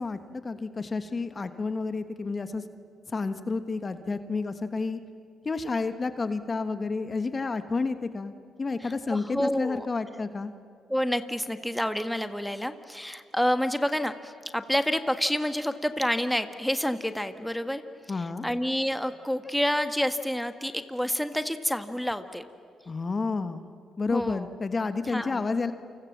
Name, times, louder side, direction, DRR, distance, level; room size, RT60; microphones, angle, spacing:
voice 1, 0.0-2.6 3.1-5.0 5.4-10.5 18.1-18.5 22.9-23.7 24.0-25.7, left 4 dB, 35° left, 10 dB, 1.4 m, -30 dB
voice 2, 8.8-9.9 10.9-17.8 18.2-22.4 24.1-24.5 25.1-25.4, equal, 5° left, 9 dB, 1.5 m, -28 dB
29.0 x 25.5 x 7.4 m, 2.2 s
supercardioid pair, 60°, 0 cm